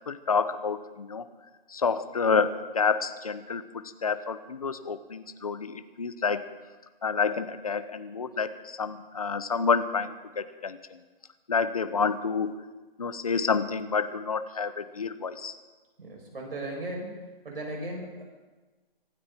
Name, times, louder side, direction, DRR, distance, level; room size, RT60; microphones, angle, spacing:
voice 1, 0.1-1.2 1.7-3.6 4.0-6.5 7.0-11.0 11.5-12.5 13.0-15.5, left 5 dB, 40° left, 11 dB, 0.9 m, -28 dB
voice 2, 16.0-18.2, right 1 dB, 70° right, -1 dB, 7.4 m, -37 dB
24.5 x 12.5 x 4.4 m, 1.3 s
hypercardioid pair, 175°, 29 cm